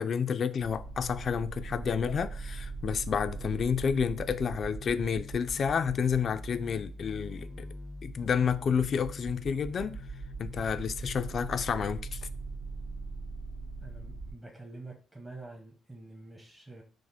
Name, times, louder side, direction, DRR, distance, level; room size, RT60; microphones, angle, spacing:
voice 1, 0.0-7.7 8.0-10.0 10.4-12.2, left 7 dB, 50° left, 0.3 m, -30 dB
sound 1, 0.6-14.3, right 3 dB, 75° right, 1.7 m, -41 dB
voice 2, 13.8-16.8, right 2 dB, 20° right, 0.9 m, -47 dB
4.8 x 2.1 x 4.1 m
cardioid pair, 90°, 0 cm